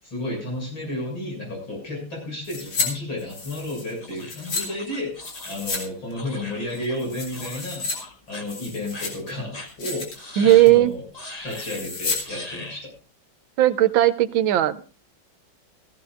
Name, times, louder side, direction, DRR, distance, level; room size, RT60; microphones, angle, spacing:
voice 1, 0.0-7.9 8.3-11.0 11.4-12.9, left 1 dB, 80° left, -1 dB, 7.7 m, -32 dB
sound 1, 2.4-2.9 3.2-4.6 5.2-5.8 6.1-6.2 6.7-8.0 8.3-9.3 9.7-10.2 10.5-10.8 11.5-12.2 12.5-12.6, left 4 dB, 65° left, 3.3 m, -31 dB
sound 2, 4.0-7.0 7.3-7.6 7.9-8.4 8.9-9.1 9.5-9.7 10.1-10.7 11.1-11.8 12.2-12.8, left 2 dB, 20° left, 1.7 m, -40 dB
voice 2, 10.4-10.9 13.6-14.8, right 14 dB, 80° right, 11 dB, 1.6 m, -16 dB
16.5 x 15.0 x 2.5 m, 0.36 s
omnidirectional pair, 2.1 m